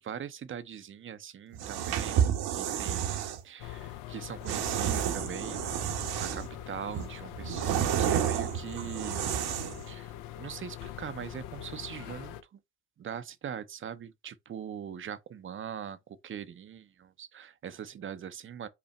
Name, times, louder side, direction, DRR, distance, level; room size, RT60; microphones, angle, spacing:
voice 1, 0.0-9.2 9.9-12.6 13.0-18.7, right 8 dB, 30° right, 0.6 m, -41 dB
sound 1, 1.5-3.4 4.5-6.5 6.9-9.8, right 9 dB, 55° right, 1.0 m, -30 dB
sound 2, 3.6-12.4, left 12 dB, 60° left, 0.7 m, -43 dB
5.7 x 2.1 x 4.1 m
hypercardioid pair, 70°, 45 cm